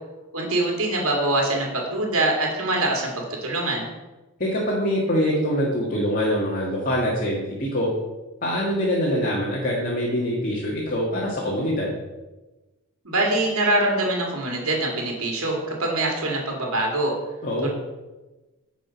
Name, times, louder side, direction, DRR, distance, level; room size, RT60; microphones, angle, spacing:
voice 1, 0.3-3.9 13.0-17.1 17.6-17.7, right 2 dB, 70° right, -1 dB, 2.5 m, -24 dB
voice 2, 4.4-7.9 8.4-11.9 17.4-17.7, equal, 40° left, -5 dB, 1.7 m, -24 dB
10.0 x 5.0 x 5.9 m, 1.1 s
head